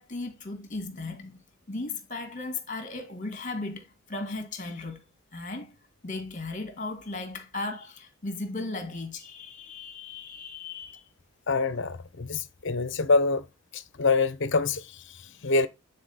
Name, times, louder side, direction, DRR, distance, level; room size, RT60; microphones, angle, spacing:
voice 1, 0.0-1.4 1.7-5.0 5.3-5.8 6.0-11.0 15.4-15.5, left 3 dB, 40° left, 1.9 m, -36 dB
voice 2, 11.5-13.4 13.7-15.7, left 3 dB, 60° left, 0.8 m, -26 dB
8.7 x 4.1 x 4.1 m
head